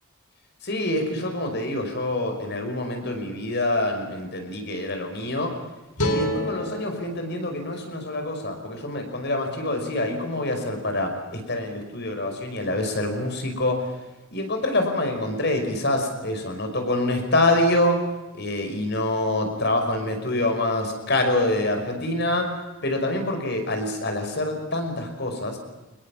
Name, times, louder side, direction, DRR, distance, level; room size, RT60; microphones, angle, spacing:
voice 1, 0.6-5.5 6.1-13.8 14.3-18.0 18.3-22.5 22.8-25.6, left 1 dB, 50° left, 5 dB, 5.6 m, -26 dB
sound 1, 6.0-9.2, left 1 dB, 90° left, 4.7 m, -31 dB
25.5 x 21.0 x 7.3 m, 1.1 s
head